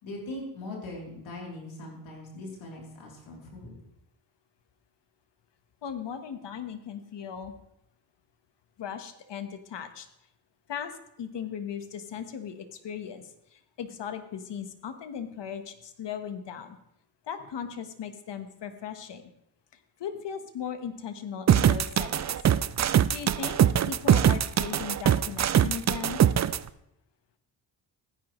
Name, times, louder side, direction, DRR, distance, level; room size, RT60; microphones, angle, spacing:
voice 1, 0.0-3.7, left 1 dB, 90° left, -2 dB, 3.5 m, -40 dB
voice 2, 5.8-7.5 8.8-10.1 10.7-16.8 17.3-19.2 19.7-22.4 23.1-26.2, left 8 dB, 65° left, 9 dB, 1.4 m, -38 dB
sound 1, 21.5-26.6, right 9 dB, 40° right, 0.5 m, -22 dB
15.5 x 10.0 x 3.1 m, 0.80 s
cardioid pair, 65°, 46 cm